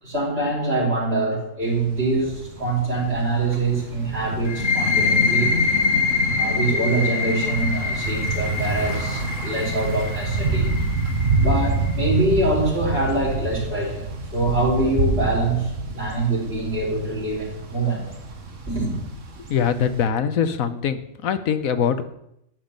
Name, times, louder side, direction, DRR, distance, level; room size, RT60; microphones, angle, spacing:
voice 1, 0.0-5.5 6.3-10.7 11.3-14.1 14.3-18.0 18.7-19.0, right 2 dB, 45° right, -4 dB, 5.0 m, -24 dB
Thunder / Bicycle, 1.6-20.0, right 3 dB, 65° right, 1.7 m, -28 dB
sound 1, 4.5-11.9, left 4 dB, 70° left, 1.6 m, -24 dB
voice 2, 19.5-22.1, left 7 dB, 85° left, 11 dB, 1.3 m, -23 dB
13.5 x 5.3 x 8.7 m, 0.79 s
omnidirectional pair, 1.4 m